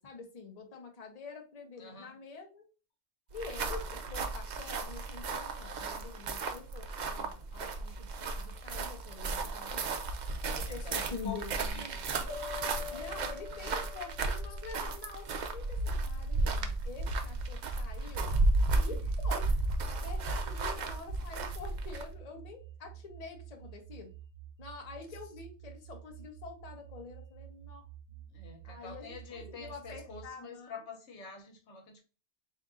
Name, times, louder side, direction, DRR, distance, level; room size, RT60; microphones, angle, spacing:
voice 1, 0.0-2.6 3.3-10.1 10.5-11.9 12.9-18.3 18.8-19.5 20.0-24.1 24.6-27.8 28.6-30.7, left 4 dB, 40° left, 0.8 m, -46 dB
voice 2, 1.8-2.2 10.3-12.1 12.5-13.8 18.7-19.0 28.1-32.0, left 4 dB, 80° left, 1.2 m, -48 dB
sound 1, 3.3-22.2, right 2 dB, 55° right, 0.5 m, -34 dB
sound 2, 12.3-15.3, left 6 dB, 15° left, 1.4 m, -45 dB
sound 3, 17.6-30.3, right 10 dB, 85° right, 0.9 m, -50 dB
3.6 x 2.7 x 3.7 m
omnidirectional pair, 1.2 m